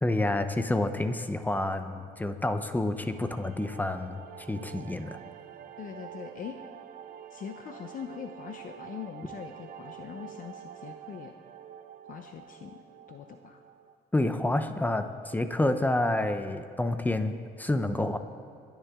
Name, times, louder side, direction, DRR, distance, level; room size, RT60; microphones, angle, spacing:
voice 1, 0.0-5.2 14.1-18.2, left 1 dB, 10° left, 9 dB, 0.7 m, -29 dB
sound 1, 2.9-14.0, right 9 dB, 60° right, 0.7 m, -47 dB
voice 2, 5.8-6.6 7.3-11.3 12.1-12.8 13.1-13.6, left 8 dB, 55° left, 6 dB, 0.8 m, -42 dB
22.5 x 10.5 x 3.7 m, 2.4 s
cardioid pair, 110°, 17 cm